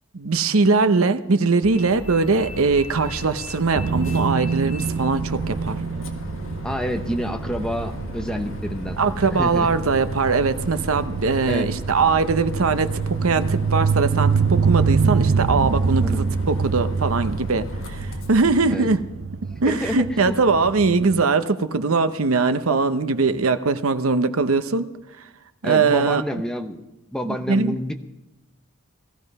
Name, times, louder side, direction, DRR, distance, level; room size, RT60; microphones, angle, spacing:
voice 1, 0.1-5.8 9.0-12.9 13.2-19.0 19.6-24.9 25.6-26.2 27.5-27.9, right 4 dB, 80° right, 11 dB, 0.8 m, -21 dB
Bus, 1.6-18.5, left 1 dB, 65° left, 1.6 m, -35 dB
sound 1, 3.7-21.2, right 5 dB, 60° right, 0.4 m, -26 dB
voice 2, 6.6-9.7 11.5-11.7 16.0-16.2 18.7-18.9 19.5-20.4 25.6-26.8 27.1-27.9, equal, 5° left, 6 dB, 0.8 m, -28 dB
17.5 x 13.5 x 5.4 m, 0.98 s
head